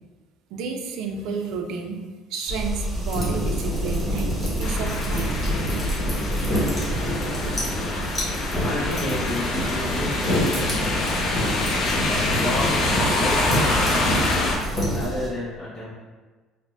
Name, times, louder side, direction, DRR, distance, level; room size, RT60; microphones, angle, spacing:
voice 1, 0.5-2.0 2.3-5.5 5.9-6.0, right 5 dB, 65° right, 4 dB, 0.4 m, -31 dB
sound 1, 2.5-15.3, equal, 5° right, 0.6 m, -32 dB
sound 2, 3.1-15.1, equal, 15° left, 1.0 m, -28 dB
sound 3, 4.6-14.5, left 2 dB, 70° left, 0.7 m, -26 dB
voice 2, 8.6-11.5 12.0-14.3 14.9-15.9, left 1 dB, 40° left, -11 dB, 1.2 m, -32 dB
4.8 x 2.1 x 2.4 m, 1.3 s
cardioid pair, 150°, 0 cm